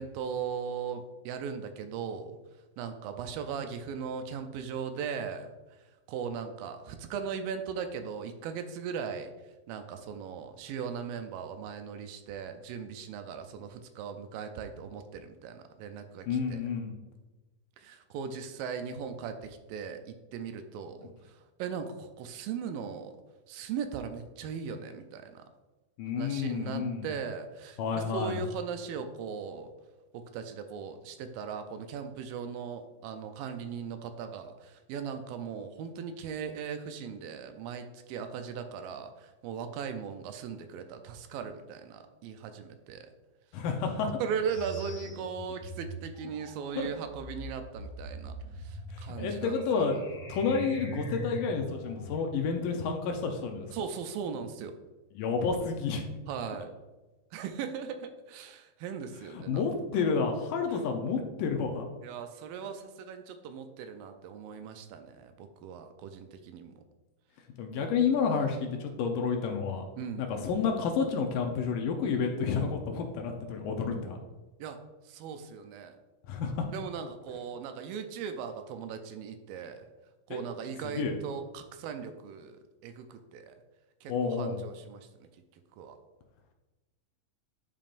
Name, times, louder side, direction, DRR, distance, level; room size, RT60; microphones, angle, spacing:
voice 1, 0.0-2.4 2.8-5.5 6.1-9.3 9.7-16.6 17.8-23.1 23.5-25.4 26.2-29.7 30.1-43.1 44.2-49.6 53.7-54.7 56.3-56.7 57.3-59.6 59.9-60.0 60.7-60.8 62.0-66.7 70.0-70.3 74.6-74.8 75.1-76.0 76.7-79.9 80.3-83.6 84.0-85.3 85.8-86.0, right 6 dB, 80° right, 7 dB, 2.3 m, -38 dB
voice 2, 16.3-16.9 26.0-27.1 27.8-28.4 43.5-44.1 46.8-46.9 48.9-50.0 50.3-53.7 55.2-56.0 59.5-61.9 67.6-69.9 70.2-74.2 76.3-76.7 80.3-80.4 80.8-81.1 84.1-84.6, left 5 dB, 75° left, 3 dB, 2.3 m, -30 dB
sound 1, 44.5-52.3, right 1 dB, 55° left, 1.9 m, -42 dB
10.5 x 5.2 x 2.5 m, 1.1 s
omnidirectional pair, 4.1 m